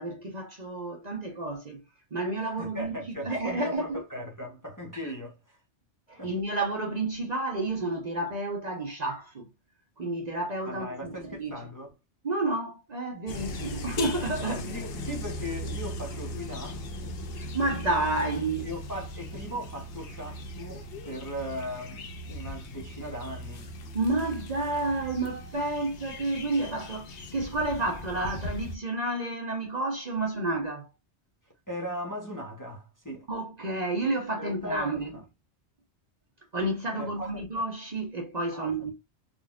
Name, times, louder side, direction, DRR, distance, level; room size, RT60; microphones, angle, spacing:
voice 1, 0.0-1.8 2.1-4.0 5.0-5.1 6.1-9.5 10.0-11.6 12.2-14.8 17.4-18.7 23.9-30.9 33.3-35.1 36.5-38.9, right 2 dB, 40° right, 0.8 m, -30 dB
voice 2, 2.6-5.6 6.2-6.3 10.6-11.9 14.4-16.8 18.6-23.7 31.7-33.3 34.4-35.2 36.9-37.4 38.5-38.9, left 1 dB, 20° left, 0.8 m, -38 dB
sound 1, 13.3-28.8, left 1 dB, 65° left, 0.8 m, -38 dB
3.7 x 2.5 x 2.2 m
omnidirectional pair, 1.2 m